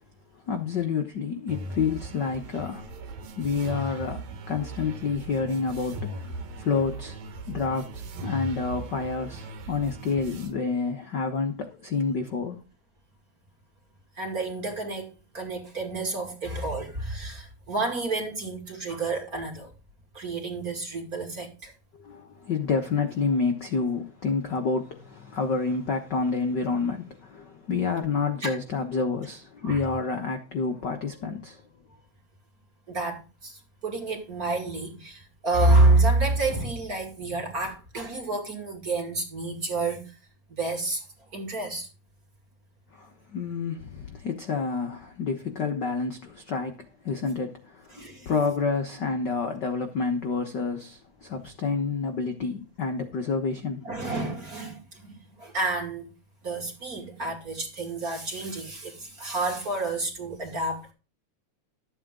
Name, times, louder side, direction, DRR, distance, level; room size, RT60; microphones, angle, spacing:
voice 1, 0.5-3.0 3.4-7.2 7.5-7.9 8.2-12.6 22.0-31.6 42.9-53.9, left 4 dB, 55° left, 1.2 m, -29 dB
sound 1, 1.5-10.5, right 1 dB, 65° right, 2.7 m, -38 dB
voice 2, 14.2-19.7 20.1-21.7 28.4-28.5 29.6-29.8 32.9-40.2 40.5-41.0 41.3-41.9 47.9-48.3 53.8-56.1 56.4-60.9, right 2 dB, 30° right, 2.6 m, -28 dB
13.0 x 8.8 x 3.8 m
omnidirectional pair, 3.6 m